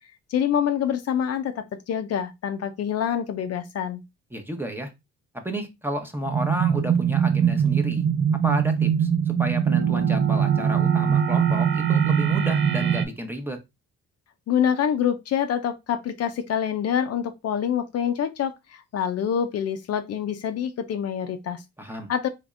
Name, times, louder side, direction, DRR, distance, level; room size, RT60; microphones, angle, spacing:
voice 1, 0.3-4.0 14.5-21.6 22.1-22.3, left 8 dB, 55° left, 0.5 m, -26 dB
voice 2, 4.3-4.9 5.4-8.0 8.4-13.6 21.8-22.1, equal, 5° right, 0.8 m, -32 dB
sound 1, 6.3-13.1, right 8 dB, 40° right, 0.5 m, -22 dB
3.4 x 3.1 x 2.4 m
cardioid pair, 90°, 30 cm